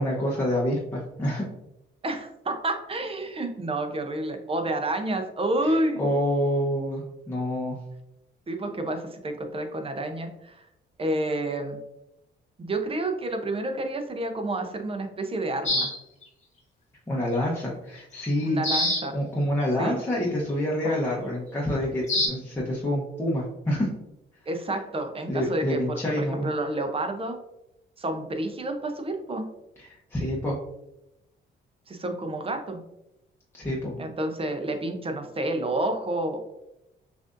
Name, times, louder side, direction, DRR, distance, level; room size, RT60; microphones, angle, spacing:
voice 1, 0.0-1.4 6.0-7.8 17.1-18.6 19.1-23.9 25.3-26.5 29.8-30.6 33.5-33.9, equal, 10° left, -5 dB, 0.9 m, -27 dB
voice 2, 2.0-6.2 8.5-10.6 11.0-11.8 12.6-15.9 18.4-19.2 19.8-20.0 20.8-21.0 24.5-27.4 28.0-29.4 31.9-32.8 34.0-36.5, right 1 dB, 30° right, 5 dB, 0.7 m, -29 dB
sound 1, 15.7-16.0 18.1-18.3 18.6-19.0 19.6-19.7 22.1-22.3, left 1 dB, 35° left, 1.2 m, -24 dB
5.9 x 2.6 x 2.5 m, 0.88 s
cardioid pair, 90°, 20 cm